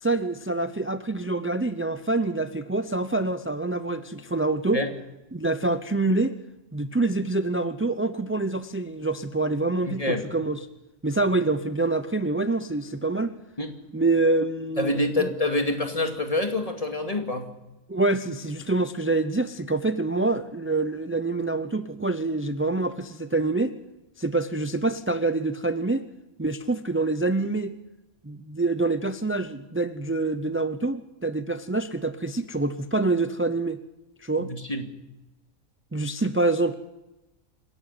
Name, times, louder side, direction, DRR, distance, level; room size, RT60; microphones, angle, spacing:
voice 1, 0.0-4.8 5.3-6.3 6.7-10.6 11.0-13.3 13.9-15.3 17.9-23.7 24.2-26.0 26.4-27.7 28.2-33.8 34.2-34.5 35.9-36.7, right 2 dB, 20° right, 11 dB, 0.3 m, -26 dB
voice 2, 9.8-10.2 13.6-13.7 14.8-17.5 34.4-34.9, left 2 dB, 25° left, 4 dB, 2.5 m, -26 dB
26.5 x 12.0 x 9.5 m, 0.99 s
omnidirectional pair, 1.4 m